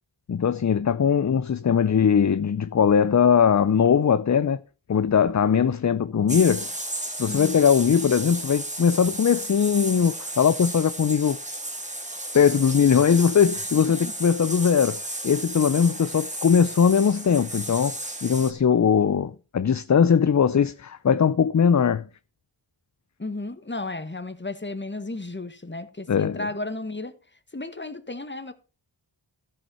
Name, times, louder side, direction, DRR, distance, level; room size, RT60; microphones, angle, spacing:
voice 1, 0.3-4.6 4.9-6.7 7.2-11.4 12.3-22.0 26.1-26.5, left 7 dB, 40° left, 0.5 m, -20 dB
sound 1, 6.3-18.5, right 1 dB, 15° right, 1.8 m, -34 dB
voice 2, 7.2-7.6 13.8-14.1 23.2-27.1 27.5-28.5, left 2 dB, 25° left, 1.5 m, -34 dB
14.0 x 5.6 x 5.6 m
wide cardioid pair, 65°, 45 cm